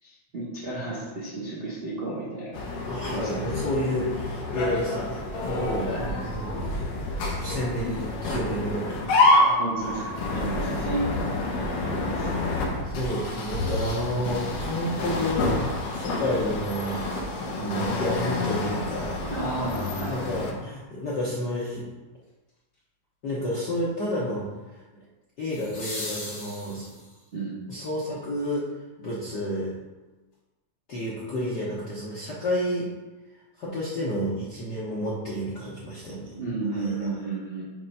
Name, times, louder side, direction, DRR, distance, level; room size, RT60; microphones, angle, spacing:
voice 1, 0.0-2.6 3.1-3.4 5.9-6.3 9.4-12.7 19.3-20.4 27.3-27.6 36.2-37.6, right 2 dB, 65° right, -7 dB, 0.5 m, -33 dB
sound 1, 2.5-20.5, left 2 dB, 65° left, 1.8 m, -28 dB
voice 2, 2.9-6.9 7.3-9.3 12.8-19.3 20.1-21.9 23.2-24.5 25.4-27.0 27.7-28.7 29.0-29.8 30.9-32.9 33.6-36.4 36.8-36.9, equal, 85° left, -7 dB, 0.9 m, -30 dB
sound 2, 19.9-20.0 25.5-27.3 29.5-29.6, left 1 dB, 45° left, 2.8 m, -38 dB
7.1 x 3.3 x 5.4 m, 1.1 s
omnidirectional pair, 3.5 m